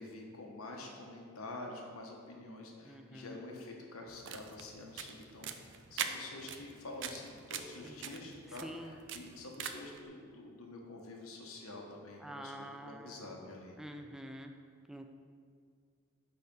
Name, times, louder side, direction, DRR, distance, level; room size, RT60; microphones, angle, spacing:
voice 1, 0.0-13.8, left 2 dB, 85° left, 0 dB, 1.2 m, -47 dB
voice 2, 2.8-3.4 7.8-9.0 12.2-13.4 13.8-14.5 14.9-15.1, equal, ahead, 4 dB, 0.4 m, -47 dB
sound 1, 4.1-10.0, right 8 dB, 55° right, 0.5 m, -43 dB
9.5 x 4.2 x 5.4 m, 2.1 s
head